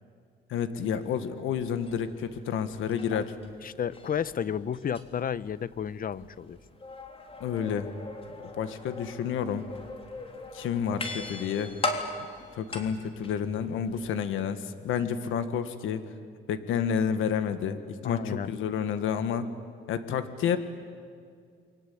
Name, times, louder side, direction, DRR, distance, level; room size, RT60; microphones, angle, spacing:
voice 1, 0.5-3.3 7.4-7.9 8.6-9.6 10.5-11.7 12.5-16.0 16.5-19.5 19.9-20.6, left 8 dB, 85° left, 10 dB, 1.6 m, -30 dB
sound 1, 1.5-14.2, left 2 dB, 30° left, 3.6 m, -40 dB
voice 2, 3.6-6.6 18.0-18.5, left 8 dB, 45° left, 17 dB, 0.9 m, -32 dB
29.5 x 23.5 x 8.6 m, 2.1 s
cardioid pair, 90°, 20 cm